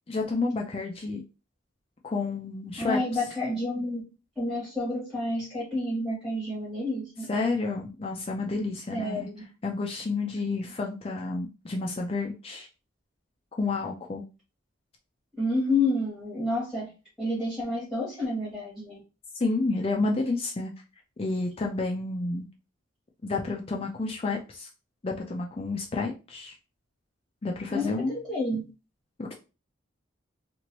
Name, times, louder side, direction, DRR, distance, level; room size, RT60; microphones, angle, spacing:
voice 1, 0.1-1.2 2.0-3.0 7.3-9.3 9.6-12.7 13.6-14.2 19.4-20.7 21.2-22.4 23.2-24.7 25.0-26.5 27.4-28.2 29.2-29.4, left 3 dB, 30° left, 0 dB, 0.4 m, -30 dB
voice 2, 2.8-4.0 4.4-7.3 8.9-9.4 15.4-16.9 17.2-19.0 27.7-28.6, left 2 dB, ahead, -8 dB, 1.1 m, -29 dB
3.0 x 2.5 x 2.9 m, 0.30 s
head